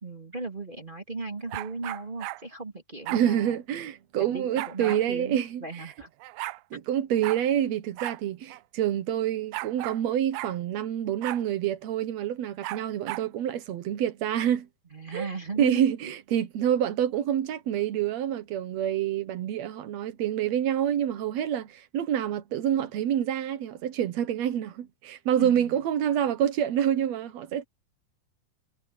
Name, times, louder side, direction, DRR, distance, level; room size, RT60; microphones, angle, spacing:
voice 1, 0.0-3.6 4.2-6.1 14.9-15.9 25.4-25.8, right 3 dB, 15° right, 2.1 m, -37 dB
sound 1, 1.5-2.4 3.1-3.3 4.6-5.0 5.9-6.0 6.2-6.6 7.2-7.4 8.0-8.2 8.5-8.6 9.5-10.0 10.3-10.5 11.2-11.4 12.6-13.3, right 21 dB, 90° right, 2.4 m, -35 dB
voice 2, 3.1-5.9 6.7-14.7 15.1-15.3 15.6-27.6, right 10 dB, 70° right, 1.7 m, -27 dB
omnidirectional pair, 4.2 m